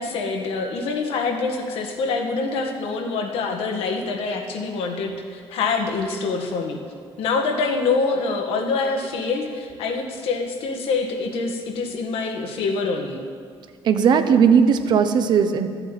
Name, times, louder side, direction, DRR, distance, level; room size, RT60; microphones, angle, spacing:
voice 1, 0.0-6.8 7.2-13.2, left 4 dB, 85° left, 3 dB, 1.7 m, -25 dB
voice 2, 13.8-15.7, right 7 dB, 50° right, 8 dB, 0.9 m, -17 dB
13.0 x 7.8 x 9.1 m, 2.1 s
cardioid pair, 175°, 10 cm